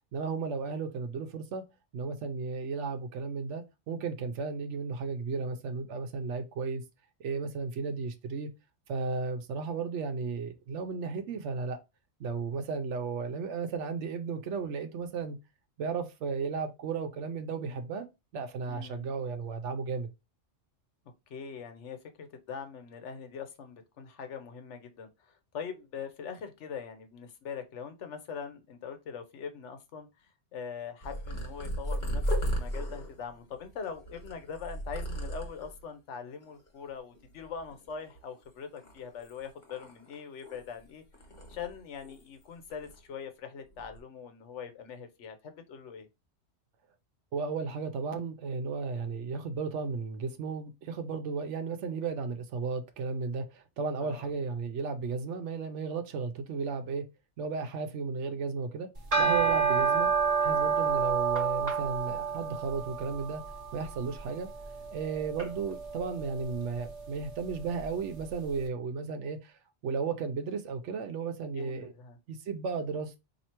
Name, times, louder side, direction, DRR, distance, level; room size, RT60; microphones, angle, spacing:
voice 1, 0.1-1.7 1.9-6.8 7.2-8.5 8.9-11.8 12.2-15.4 15.8-18.1 18.3-20.1 47.3-57.1 57.4-58.9 59.2-60.1 60.4-63.4 63.7-64.5 64.9-71.9 72.3-73.2, right 5 dB, 85° right, 0.9 m, -34 dB
voice 2, 18.7-19.1 21.3-30.1 30.5-41.0 41.5-46.1 54.0-54.3 59.2-59.5 71.5-72.2, left 6 dB, 85° left, 1.1 m, -42 dB
Purr, 31.0-35.8 36.4-36.9 37.1-38.4 38.8-40.8 41.1-42.4 42.7-43.0 43.7-44.0, equal, 45° left, 1.4 m, -36 dB
sound 1, 59.0-68.3, right 5 dB, 35° right, 1.0 m, -30 dB
4.3 x 2.8 x 2.9 m
omnidirectional pair, 1.2 m